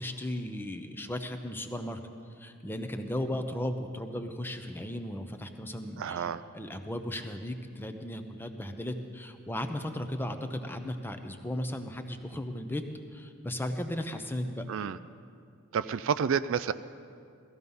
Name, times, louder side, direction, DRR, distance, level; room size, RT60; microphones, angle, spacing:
voice 1, 0.0-2.0 2.4-6.3 6.5-12.8 13.1-14.7, left 1 dB, 10° left, 6 dB, 0.8 m, -36 dB
voice 2, 6.0-6.4 14.7-15.0 15.7-16.7, right 7 dB, 60° right, 14 dB, 0.4 m, -29 dB
18.0 x 14.5 x 5.5 m, 2.4 s
head